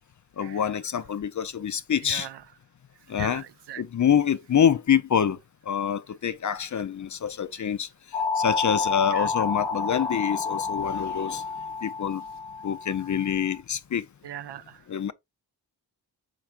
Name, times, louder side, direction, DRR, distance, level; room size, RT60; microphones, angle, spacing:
voice 1, 0.4-2.3 3.1-3.4 3.8-5.4 5.7-7.9 8.4-11.5 11.8-12.2 12.6-14.0 14.9-15.1, left 8 dB, 45° left, 0.5 m, -26 dB
voice 2, 2.0-2.4 3.2-3.8 9.1-9.5 14.2-15.1, right 11 dB, 65° right, 0.5 m, -40 dB
sound 1, 8.1-13.6, left 4 dB, 60° left, 0.8 m, -30 dB
4.5 x 4.4 x 2.4 m
cardioid pair, 40°, 44 cm